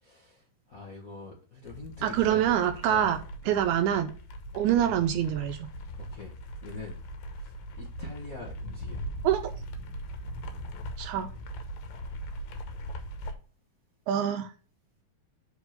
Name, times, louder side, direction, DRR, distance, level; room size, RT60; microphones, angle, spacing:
voice 1, 0.0-2.4 2.9-3.1 3.5-3.6 6.0-6.3 6.6-7.0 7.4-9.0, left 3 dB, 65° left, -3 dB, 0.8 m, -44 dB
sound 1, 1.7-13.4, equal, 85° left, 2.7 m, -40 dB
voice 2, 2.0-3.2 3.5-4.1 4.5-5.7 9.2-9.4 11.0-11.3 14.1-14.5, right 10 dB, 80° right, 6 dB, 1.7 m, -25 dB
5.2 x 4.9 x 6.4 m, 0.38 s
omnidirectional pair, 4.0 m